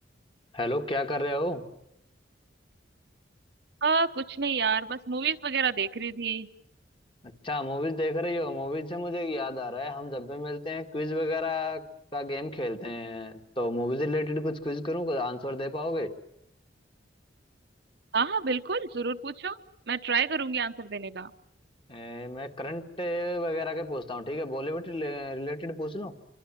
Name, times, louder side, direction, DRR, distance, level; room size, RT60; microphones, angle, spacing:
voice 1, 0.5-1.6 7.2-11.8 12.1-16.1 21.9-26.1, left 1 dB, 25° left, 5 dB, 1.9 m, -31 dB
voice 2, 3.8-6.5 18.1-19.6 19.9-21.3, right 5 dB, 60° right, 9 dB, 1.0 m, -28 dB
28.0 x 24.5 x 7.5 m, 0.79 s
head